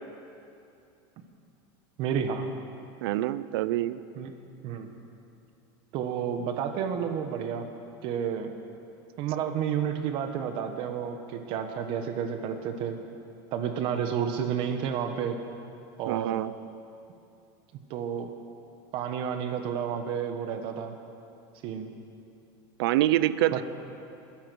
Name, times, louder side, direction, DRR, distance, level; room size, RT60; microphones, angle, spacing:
voice 1, 2.0-2.5 4.1-4.3 4.6-4.9 5.9-7.7 8.0-8.5 9.2-13.0 13.5-15.4 16.0-16.4 17.9-18.3 18.9-20.9 21.6-21.9 23.5-23.6, right 8 dB, 45° right, 6 dB, 1.3 m, -31 dB
voice 2, 3.0-4.0 16.1-16.5 22.8-23.6, right 14 dB, 85° right, 15 dB, 0.6 m, -26 dB
21.0 x 10.5 x 6.3 m, 2.7 s
supercardioid pair, 160°, 12 cm